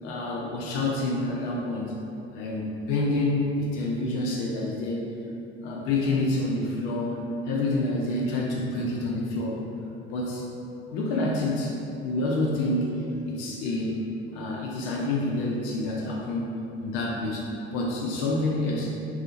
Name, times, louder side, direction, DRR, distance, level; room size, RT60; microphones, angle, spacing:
voice 1, 0.0-2.0 2.3-5.1 5.6-7.2 7.5-9.6 10.1-10.5 10.9-18.9, left 2 dB, 60° left, -2 dB, 0.5 m, -28 dB
2.7 x 2.3 x 2.5 m, 2.7 s
figure-of-eight pair, 55°, 32 cm